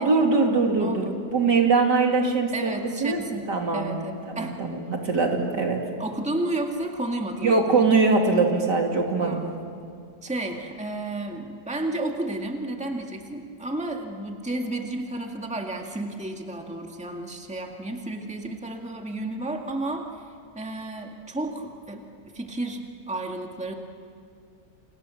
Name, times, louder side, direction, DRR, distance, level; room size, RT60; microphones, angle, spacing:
voice 1, 0.0-2.7 3.0-3.2 3.5-4.0 4.3-5.8 7.4-9.4, right 4 dB, 75° right, 2 dB, 3.4 m, -22 dB
voice 2, 0.8-1.3 2.5-4.6 6.0-7.8 9.2-9.6 10.2-20.2 20.5-23.7, right 2 dB, 5° right, 2 dB, 1.9 m, -32 dB
29.0 x 28.5 x 7.1 m, 2.3 s
omnidirectional pair, 1.8 m